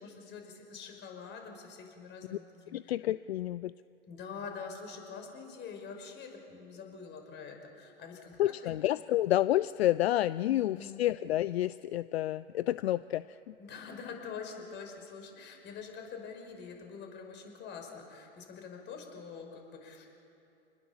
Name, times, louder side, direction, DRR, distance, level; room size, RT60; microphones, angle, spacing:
voice 1, 0.0-2.9 4.1-8.8 10.4-11.0 13.6-20.1, left 5 dB, 35° left, 3 dB, 5.6 m, -45 dB
voice 2, 2.7-3.7 8.4-13.5, left 14 dB, 70° left, 17 dB, 0.5 m, -29 dB
28.0 x 20.0 x 7.3 m, 2.8 s
hypercardioid pair, 110°, 32 cm